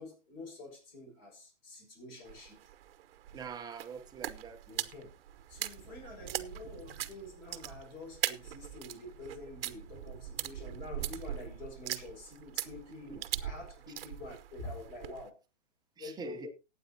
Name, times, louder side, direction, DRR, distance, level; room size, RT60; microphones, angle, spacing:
voice 1, 0.0-2.6 4.7-5.1 5.5-15.4 16.0-16.5, left 2 dB, 35° left, 6.4 m, -47 dB
sound 1, 2.2-15.3, right 12 dB, 50° right, 1.0 m, -41 dB
voice 2, 3.3-4.6 7.6-7.7 13.1-13.2 16.0-16.5, right 6 dB, 10° right, 0.9 m, -44 dB
20.5 x 9.1 x 2.8 m
hypercardioid pair, 140°, 37 cm